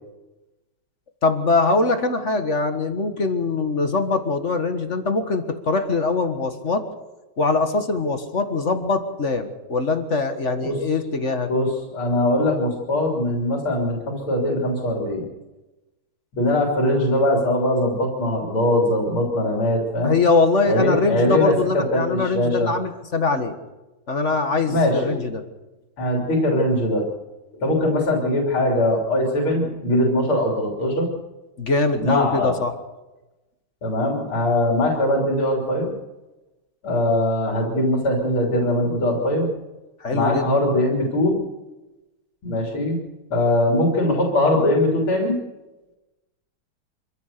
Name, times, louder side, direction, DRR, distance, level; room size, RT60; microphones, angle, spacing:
voice 1, 1.2-6.8 7.4-11.5 20.0-23.5 24.1-25.4 31.6-32.7 40.0-40.5, left 3 dB, 35° left, 7 dB, 1.7 m, -22 dB
voice 2, 11.5-15.2 16.3-20.1 20.7-22.7 24.7-25.1 26.0-27.0 27.6-31.1 32.0-32.6 33.8-35.9 36.8-39.5 40.1-41.3 42.4-43.0 43.3-45.3, left 1 dB, 75° left, -1 dB, 4.2 m, -21 dB
26.0 x 15.0 x 6.7 m, 1.1 s
omnidirectional pair, 2.3 m